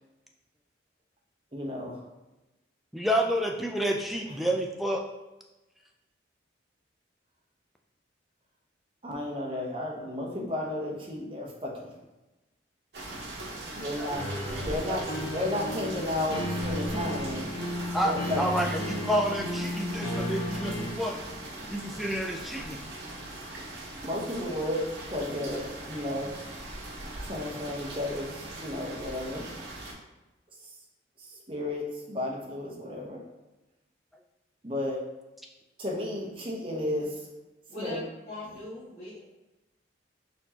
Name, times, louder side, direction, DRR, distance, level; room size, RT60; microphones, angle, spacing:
voice 1, 1.5-2.0 9.0-11.9 13.7-14.3 14.6-15.1 15.3-17.5 18.0-18.6 24.0-26.4 27.2-29.5 31.2-33.2 34.6-35.0 35.8-37.2 37.8-38.0, left 1 dB, 30° right, -2 dB, 0.8 m, -33 dB
voice 2, 2.9-5.0 14.0-15.3 17.9-21.1 21.7-22.8, equal, ahead, 1 dB, 0.4 m, -30 dB
sound 1, 12.9-29.9, right 1 dB, 60° right, 1.1 m, -40 dB
sound 2, 14.1-20.9, left 1 dB, 80° left, 1.0 m, -34 dB
voice 3, 37.7-39.2, left 1 dB, 40° left, -12 dB, 1.5 m, -39 dB
4.3 x 4.2 x 2.8 m, 1.0 s
head